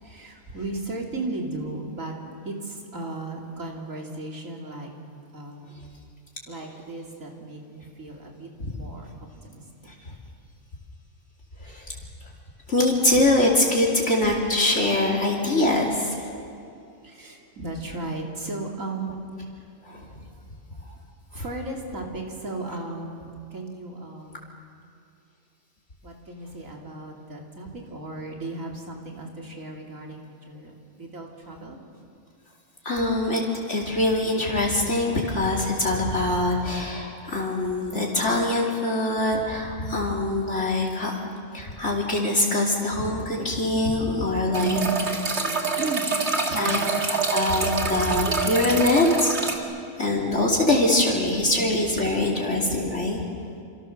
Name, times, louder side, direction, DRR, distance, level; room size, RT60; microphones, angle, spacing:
voice 1, 0.0-2.1 2.4-4.9 5.3-5.7 6.5-9.1 9.4-9.6 17.0-19.1 19.6-19.7 21.3-24.5 26.0-31.8 44.6-45.0 45.3-46.7 47.5-47.6, right 3 dB, 70° right, 0 dB, 3.4 m, -35 dB
voice 2, 12.7-16.3 19.8-20.2 21.3-21.4 32.8-41.2 41.5-44.8 46.5-46.8 47.3-49.3 50.0-53.2, left 2 dB, 55° left, -2 dB, 3.2 m, -23 dB
sound 1, 44.5-49.6, right 4 dB, 50° right, 2.4 m, -26 dB
28.0 x 26.5 x 6.7 m, 2.4 s
omnidirectional pair, 1.4 m